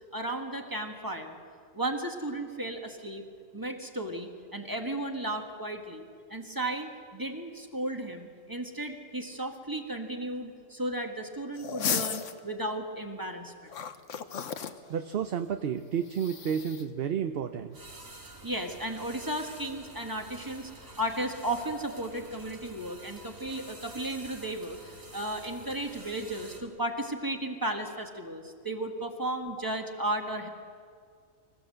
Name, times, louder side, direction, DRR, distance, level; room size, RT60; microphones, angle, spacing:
voice 1, 0.1-1.4 1.7-3.2 3.5-13.7 18.4-30.5, right 1 dB, 15° right, 3 dB, 1.7 m, -34 dB
sound 1, 11.6-12.4 13.7-14.8 16.1-16.8, left 7 dB, 70° left, 1.3 m, -34 dB
voice 2, 14.9-17.8, right 8 dB, 55° right, 8 dB, 0.9 m, -31 dB
sound 2, 17.7-26.6, right 2 dB, 80° right, 2.9 m, -48 dB
25.5 x 15.5 x 7.8 m, 2.2 s
omnidirectional pair, 1.3 m